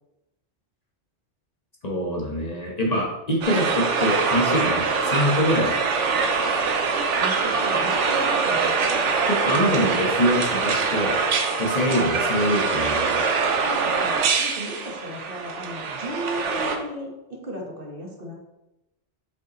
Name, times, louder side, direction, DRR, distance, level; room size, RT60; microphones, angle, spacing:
voice 1, 1.8-5.7 9.2-11.2 11.6-13.2, equal, 35° left, -2 dB, 1.2 m, -24 dB
sound 1, 3.4-16.8, right 4 dB, 80° right, 1.1 m, -24 dB
voice 2, 7.2-9.0 11.9-12.1 13.6-18.4, equal, 50° right, -1 dB, 1.5 m, -36 dB
7.2 x 5.4 x 3.1 m, 0.94 s
omnidirectional pair, 1.2 m